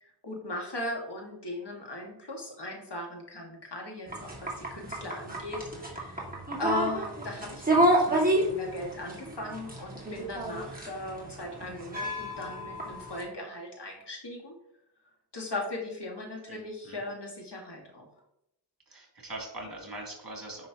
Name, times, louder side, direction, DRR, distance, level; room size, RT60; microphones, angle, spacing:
voice 1, 0.0-6.2 6.6-14.6 15.3-18.1, left 2 dB, 75° left, 0 dB, 1.9 m, -38 dB
sound 1, 4.1-13.2, right 1 dB, 20° right, 2.1 m, -30 dB
voice 2, 18.9-20.7, right 1 dB, 55° right, -1 dB, 2.6 m, -41 dB
9.4 x 5.4 x 2.9 m, 0.80 s
wide cardioid pair, 65°, 41 cm